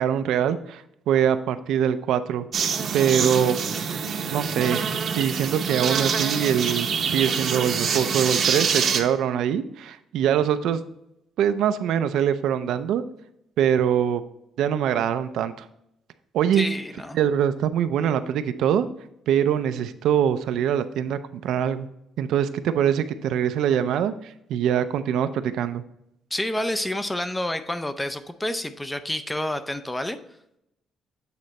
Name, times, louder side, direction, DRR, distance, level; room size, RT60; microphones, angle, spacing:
voice 1, 0.0-2.5 2.9-3.6 4.3-4.9 5.1-10.8 11.4-13.0 13.6-14.2 14.6-15.7 16.3-16.7 17.1-18.9 19.3-21.9 22.2-25.8, right 9 dB, 80° right, 11 dB, 0.5 m, -23 dB
sound 1, 2.5-9.0, right 6 dB, 50° right, 0.7 m, -25 dB
voice 2, 16.5-17.2 26.3-30.2, left 1 dB, 10° left, 10 dB, 0.4 m, -29 dB
8.3 x 3.9 x 4.2 m, 0.81 s
cardioid pair, 150°, 0 cm